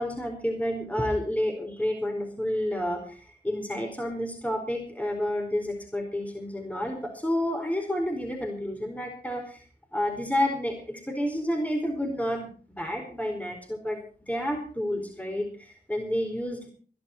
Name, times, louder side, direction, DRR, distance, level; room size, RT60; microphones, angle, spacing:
voice 1, 0.0-9.6 9.9-12.5 12.8-16.7, left 1 dB, 10° left, 3 dB, 4.6 m, -30 dB
20.0 x 11.5 x 4.5 m, 0.42 s
cardioid pair, 50°, 17 cm